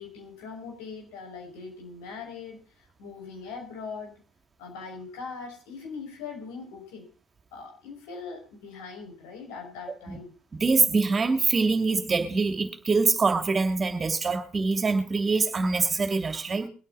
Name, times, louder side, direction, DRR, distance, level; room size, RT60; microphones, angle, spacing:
voice 1, 0.0-4.1 4.6-7.1 7.5-10.3, left 5 dB, 80° left, 5.9 m, -41 dB
voice 2, 10.6-16.7, right 4 dB, 30° right, 2.7 m, -24 dB
22.5 x 9.0 x 4.1 m
hypercardioid pair, 70°, 0 cm